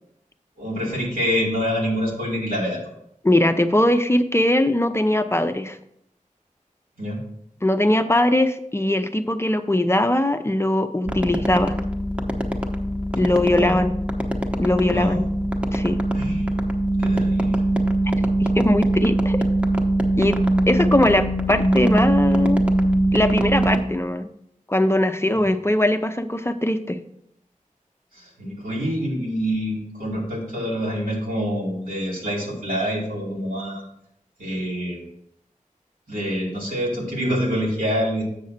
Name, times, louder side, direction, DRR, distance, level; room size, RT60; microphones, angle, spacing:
voice 1, 0.6-2.9 7.0-7.2 13.5-13.8 14.9-15.2 16.1-16.5 17.0-17.6 25.3-25.5 28.1-33.8 34.4-35.0 36.1-38.2, equal, 85° right, -4 dB, 2.7 m, -26 dB
voice 2, 3.2-5.8 7.6-11.7 13.2-13.9 14.6-15.2 15.7-16.0 18.4-19.4 20.2-20.4 20.7-22.6 23.1-24.3 24.7-27.0, left 1 dB, 20° left, 8 dB, 0.5 m, -20 dB
sound 1, 11.1-23.8, right 1 dB, 10° right, 0.9 m, -22 dB
7.4 x 6.2 x 4.2 m, 0.73 s
wide cardioid pair, 70°, 14 cm